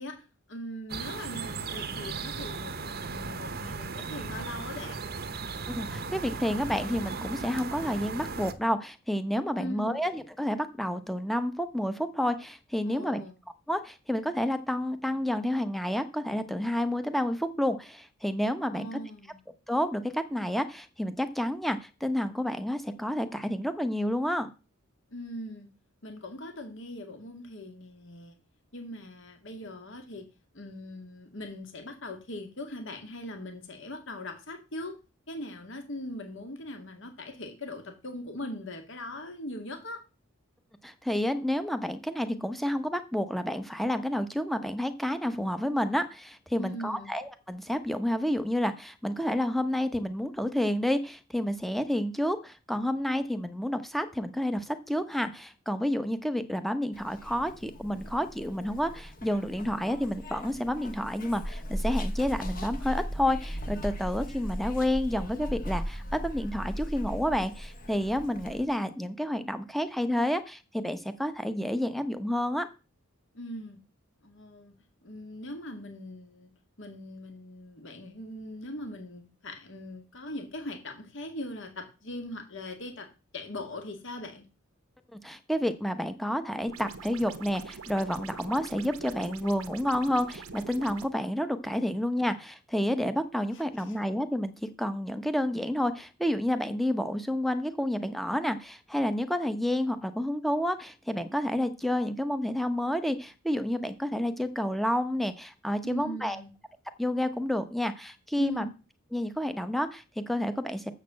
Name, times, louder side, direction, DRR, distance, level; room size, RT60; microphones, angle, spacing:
voice 1, 0.0-5.0 9.6-10.0 12.8-13.3 18.7-19.4 25.1-25.7 26.0-28.4 28.7-35.0 35.3-40.0 46.6-47.1 73.3-73.8 74.2-76.5 76.8-84.5 93.5-94.0 105.8-106.5 108.4-108.7, left 1 dB, 60° left, 5 dB, 2.1 m, -40 dB
sound 1, 0.9-8.5, right 4 dB, 45° right, 0.9 m, -37 dB
voice 2, 5.7-13.2 13.7-18.9 19.7-24.5 40.8-72.7 85.1-106.4 107.0-108.7 109.1-110.9, equal, ahead, 10 dB, 0.9 m, -30 dB
Zipper (clothing), 56.9-68.7, equal, 40° left, 1.4 m, -37 dB
sound 2, 86.7-91.1, right 5 dB, 80° right, 1.1 m, -44 dB
7.4 x 6.7 x 7.4 m, 0.31 s
head